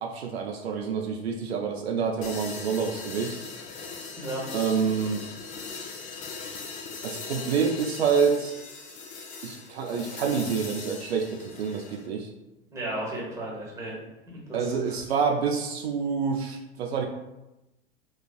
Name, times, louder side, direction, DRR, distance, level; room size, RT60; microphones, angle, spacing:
voice 1, 0.0-3.5 4.5-5.2 7.0-8.5 9.4-12.3 14.5-17.1, right 6 dB, 70° right, 3 dB, 0.5 m, -27 dB
sound 1, 2.2-12.1, left 4 dB, 25° left, 0.4 m, -40 dB
voice 2, 12.7-14.0 14.3-15.0, right 1 dB, 10° right, -4 dB, 1.1 m, -35 dB
4.0 x 2.3 x 2.2 m, 0.98 s
figure-of-eight pair, 90°, 33 cm